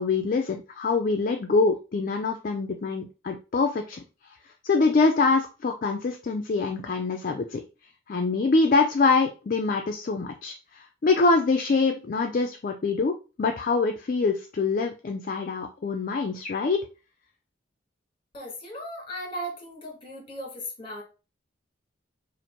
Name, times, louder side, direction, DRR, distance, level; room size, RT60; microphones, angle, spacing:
voice 1, 0.0-4.0 4.6-7.6 8.1-16.8, left 4 dB, 45° left, 4 dB, 0.4 m, -24 dB
voice 2, 18.3-21.0, equal, 30° left, 0 dB, 1.5 m, -37 dB
3.0 x 2.5 x 4.3 m, 0.32 s
head